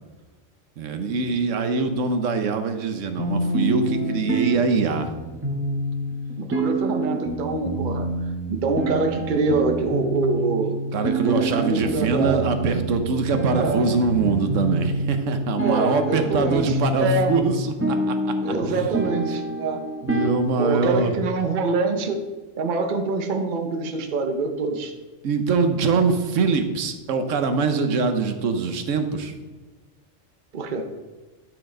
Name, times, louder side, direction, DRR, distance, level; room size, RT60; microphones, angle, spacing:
voice 1, 0.8-5.2 10.9-18.3 18.6-18.9 20.0-21.1 25.2-29.3, right 4 dB, 70° right, 8 dB, 1.2 m, -23 dB
sound 1, 3.2-21.2, right 1 dB, 10° right, 0.7 m, -28 dB
voice 2, 6.4-8.1 8.5-10.7 11.2-12.5 13.6-13.8 15.6-17.3 18.4-19.8 20.6-22.2 22.6-24.9 30.5-30.9, right 3 dB, 45° right, 5 dB, 0.9 m, -25 dB
12.5 x 5.0 x 3.8 m, 1.3 s
omnidirectional pair, 1.3 m